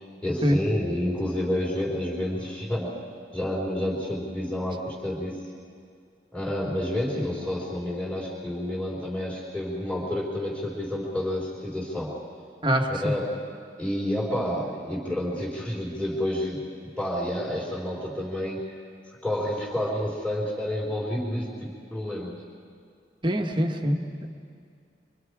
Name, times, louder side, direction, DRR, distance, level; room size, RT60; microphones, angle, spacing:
voice 1, 0.2-2.9 3.3-5.4 6.3-12.2 12.9-13.3 13.8-16.6 17.0-18.7 19.2-22.4, left 1 dB, 5° left, -6 dB, 3.9 m, -29 dB
voice 2, 12.6-13.1 23.2-24.0, equal, 25° right, 3 dB, 1.6 m, -24 dB
26.0 x 24.5 x 4.9 m, 2.3 s
head